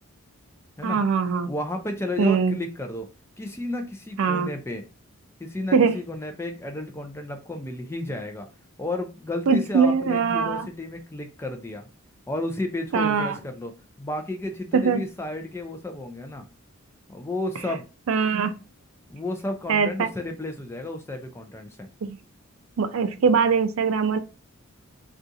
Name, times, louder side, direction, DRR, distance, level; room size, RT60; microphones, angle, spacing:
voice 1, 0.8-1.5 2.2-2.6 4.2-4.5 5.7-6.0 9.5-10.7 12.9-13.3 14.7-15.0 18.1-18.5 19.7-20.1 22.0-22.2 22.8-24.2, right 5 dB, 70° right, 0.4 m, -22 dB
voice 2, 1.5-3.1 3.4-4.8 5.4-8.5 8.8-11.9 12.3-13.7 14.0-16.5 17.1-17.9 19.1-21.9, left 1 dB, 10° left, 0.3 m, -32 dB
2.7 x 2.4 x 3.6 m
head